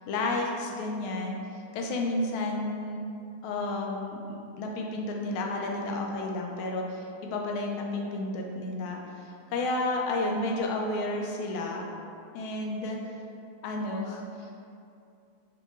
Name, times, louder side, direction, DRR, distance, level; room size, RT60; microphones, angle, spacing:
voice 1, 0.1-1.4 1.7-3.1 3.4-11.9 12.3-13.0 13.6-14.6, left 2 dB, 75° left, 0 dB, 1.3 m, -31 dB
5.3 x 2.5 x 3.0 m, 2.6 s
omnidirectional pair, 2.4 m